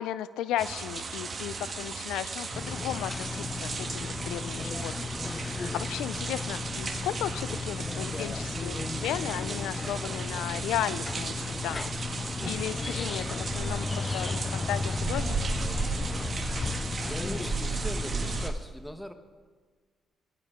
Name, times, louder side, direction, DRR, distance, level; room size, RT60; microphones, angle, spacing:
voice 1, 0.0-11.9 12.5-15.7, left 12 dB, 90° left, 16 dB, 0.4 m, -35 dB
sound 1, 0.6-18.5, right 4 dB, 40° right, 1.4 m, -35 dB
sound 2, 2.5-18.5, left 4 dB, 30° left, 0.4 m, -35 dB
voice 2, 16.8-19.1, equal, 5° left, 8 dB, 1.1 m, -41 dB
19.5 x 11.5 x 3.7 m, 1.5 s
cardioid pair, 90°, 0 cm